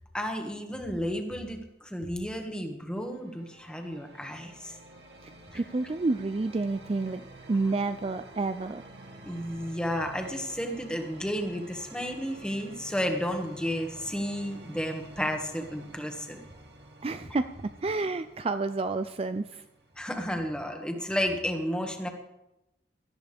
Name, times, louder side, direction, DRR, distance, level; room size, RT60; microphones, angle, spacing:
voice 1, 0.1-4.8 5.5-5.6 9.2-16.4 20.0-22.1, equal, 5° left, 3 dB, 1.6 m, -32 dB
sound 1, 2.9-20.6, right 1 dB, 70° right, 2.1 m, -50 dB
voice 2, 5.2-7.2 7.5-8.8 17.0-19.6, right 3 dB, 35° right, 10 dB, 0.4 m, -30 dB
17.5 x 14.0 x 3.5 m, 0.93 s
head